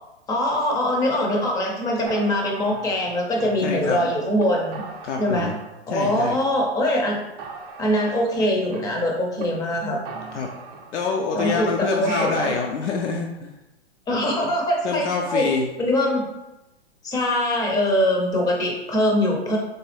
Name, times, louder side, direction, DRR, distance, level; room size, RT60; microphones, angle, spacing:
voice 1, 0.3-4.8 5.2-5.5 5.9-7.2 7.8-10.0 11.3-12.5 14.1-15.5 15.8-16.2 17.0-19.6, left 1 dB, 10° left, 0 dB, 0.4 m, -22 dB
sound 1, 2.1-4.0 4.4-4.5 4.7-5.8 6.1-6.8 7.1-7.2 7.4-9.4 9.7-9.8 10.1-11.1 11.4-12.7, right 5 dB, 35° right, 0.6 m, -39 dB
voice 2, 3.6-4.1 5.0-5.6 5.9-6.4 10.3-10.5 10.9-13.5 14.8-15.7, left 4 dB, 90° left, 1 dB, 0.5 m, -26 dB
3.9 x 2.3 x 3.2 m, 0.99 s
hypercardioid pair, 130°, 34 cm